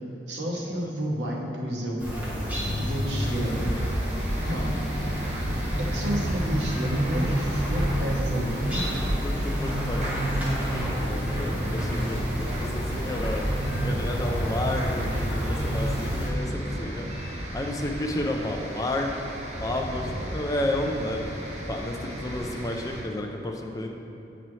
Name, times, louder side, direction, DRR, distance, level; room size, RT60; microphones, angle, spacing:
voice 1, 0.3-2.3 2.7-3.8 4.4-4.8 5.8-9.1, equal, 75° right, -2 dB, 1.0 m, -30 dB
sound 1, 2.0-16.3, equal, 10° right, 1.2 m, -28 dB
sound 2, 3.2-23.0, equal, 40° right, 0.9 m, -36 dB
voice 2, 3.4-3.8 4.4-4.6 9.2-17.1 17.5-19.3 19.6-21.3 21.7-23.9, left 1 dB, 20° left, 2 dB, 0.4 m, -32 dB
8.4 x 4.1 x 3.1 m, 2.9 s
head